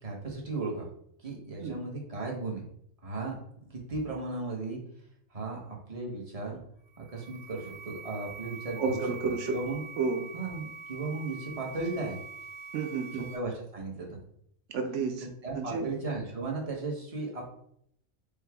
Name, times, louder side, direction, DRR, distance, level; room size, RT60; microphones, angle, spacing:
voice 1, 0.0-0.9 1.2-2.6 3.0-4.8 5.3-6.6 7.0-9.0 9.5-9.8 10.3-12.2 13.1-14.2 15.2-17.5, right 3 dB, 30° right, -1 dB, 0.9 m, -36 dB
sound 1, 6.9-13.4, right 4 dB, 15° left, 0.7 m, -45 dB
voice 2, 8.8-9.5 10.0-10.3 12.7-13.2 14.7-15.3 15.5-15.9, right 4 dB, 65° right, 6 dB, 0.9 m, -31 dB
4.9 x 2.3 x 3.4 m, 0.68 s
omnidirectional pair, 1.4 m